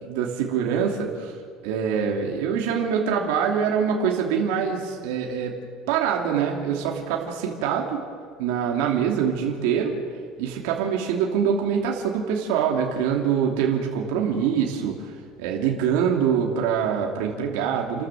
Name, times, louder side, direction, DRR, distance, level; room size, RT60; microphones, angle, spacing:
voice 1, 0.0-1.3 1.6-5.6 5.9-8.0 8.4-10.0 10.4-15.1 15.4-18.1, right 7 dB, 85° right, 0 dB, 2.9 m, -24 dB
30.0 x 13.0 x 7.8 m, 2.1 s
cardioid pair, 160°, 0 cm